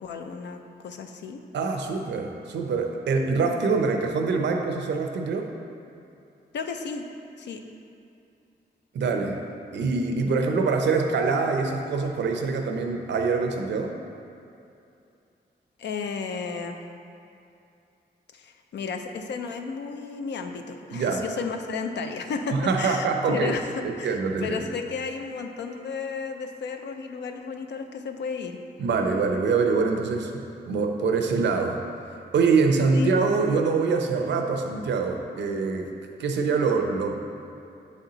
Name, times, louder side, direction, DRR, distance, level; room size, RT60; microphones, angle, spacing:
voice 1, 0.0-1.4 6.5-7.0 7.4-7.6 15.8-16.8 18.3-28.6 32.9-33.1, left 5 dB, 90° left, 5 dB, 0.5 m, -33 dB
voice 2, 1.5-5.5 8.9-9.4 9.7-14.0 20.9-21.2 22.5-23.5 23.8-24.6 28.8-31.8 32.3-35.9 36.2-37.4, right 4 dB, 90° right, 3 dB, 0.6 m, -24 dB
7.1 x 4.3 x 3.9 m, 2.6 s
cardioid pair, 95°, 18 cm